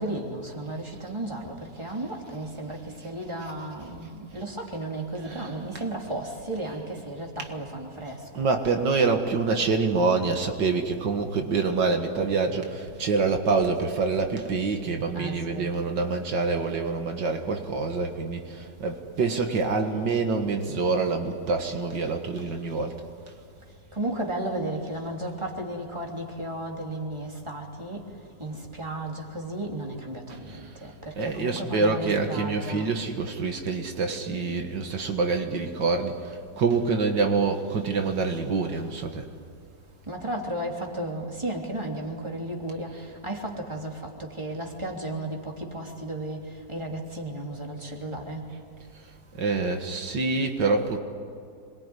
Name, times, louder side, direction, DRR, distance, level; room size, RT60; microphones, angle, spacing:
voice 1, 0.0-8.5 15.1-15.7 22.4-22.5 23.9-28.0 28.4-32.9 38.3-38.4 40.1-48.5, right 1 dB, 15° right, 0 dB, 3.3 m, -34 dB
voice 2, 5.2-5.9 7.4-7.5 8.3-23.0 30.3-30.8 31.2-39.2 43.0-43.1 49.3-51.0, right 4 dB, 80° right, 4 dB, 2.3 m, -26 dB
27.0 x 22.0 x 9.8 m, 2.3 s
omnidirectional pair, 1.9 m